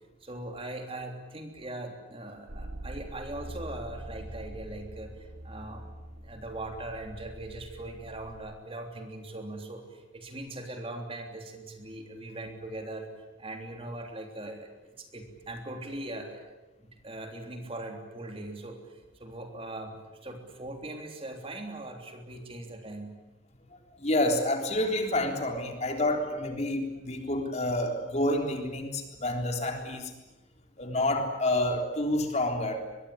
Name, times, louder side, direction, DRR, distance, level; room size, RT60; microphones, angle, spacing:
voice 1, 0.2-5.9 6.2-13.1 13.4-14.7 15.0-16.6 17.0-20.0 20.2-23.1, right 1 dB, 30° right, 4 dB, 3.2 m, -40 dB
sound 1, 2.5-8.4, right 1 dB, 85° right, 2.6 m, -44 dB
voice 2, 24.0-30.1 30.8-32.8, left 1 dB, 35° left, 4 dB, 3.6 m, -28 dB
24.5 x 22.0 x 9.9 m, 1.0 s
head